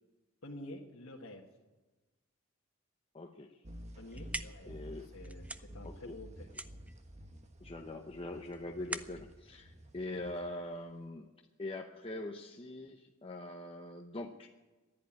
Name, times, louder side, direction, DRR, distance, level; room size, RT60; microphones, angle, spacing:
voice 1, 0.4-1.4 4.0-4.7 5.0-6.5, left 1 dB, 65° left, -2 dB, 1.5 m, -49 dB
voice 2, 3.1-3.6 4.7-5.1 5.8-6.1 7.6-11.3 11.6-14.5, left 2 dB, 25° left, 3 dB, 0.7 m, -43 dB
sound 1, 3.6-11.1, equal, 30° right, 1.4 m, -51 dB
sound 2, 3.9-10.7, right 2 dB, 5° right, 0.5 m, -46 dB
14.5 x 10.5 x 8.7 m, 1.2 s
head